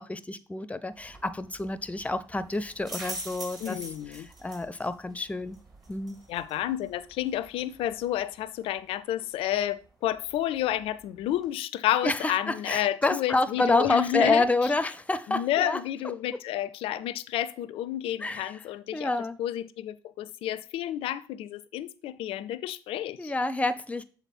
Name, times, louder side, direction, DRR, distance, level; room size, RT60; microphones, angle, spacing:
voice 1, 0.0-3.8 4.1-5.6 5.9-6.2 12.0-15.8 18.2-18.5 18.9-19.4 23.2-24.0, left 2 dB, 15° left, 0.6 m, -28 dB
sound 1, 0.9-11.5, right 2 dB, 40° right, 2.8 m, -47 dB
voice 2, 3.6-4.3 6.3-14.5 15.3-19.1 19.4-23.3, left 12 dB, 65° left, 0.4 m, -30 dB
7.0 x 4.0 x 4.2 m
hypercardioid pair, 50°, 10 cm